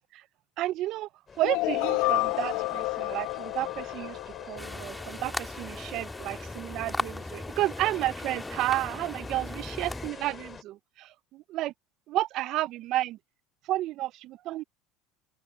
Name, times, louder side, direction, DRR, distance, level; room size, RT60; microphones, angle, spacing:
voice 1, 0.6-1.1 1.4-11.7 12.1-13.2 13.7-14.6, right 15 dB, 55° right, 0.6 m, -31 dB
sound 1, 1.3-10.6, left 5 dB, 30° left, 3.8 m, -44 dB
sound 2, 1.4-5.3, left 22 dB, 70° left, 1.2 m, -30 dB
sound 3, 4.6-10.1, left 1 dB, 5° left, 3.6 m, -38 dB
open air
hypercardioid pair, 85°, 0 cm